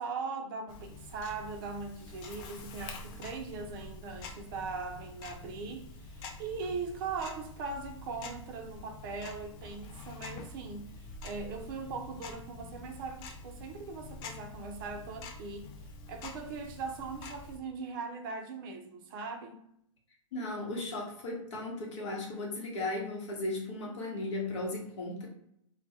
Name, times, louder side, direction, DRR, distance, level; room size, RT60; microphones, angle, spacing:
voice 1, 0.0-15.7 16.1-19.6, right 4 dB, 40° right, 0.4 m, -40 dB
Tick-tock, 0.7-17.6, left 3 dB, 25° left, 0.4 m, -47 dB
voice 2, 20.3-25.3, left 2 dB, 60° left, 0.9 m, -36 dB
2.2 x 2.1 x 2.7 m
figure-of-eight pair, 110°, 17 cm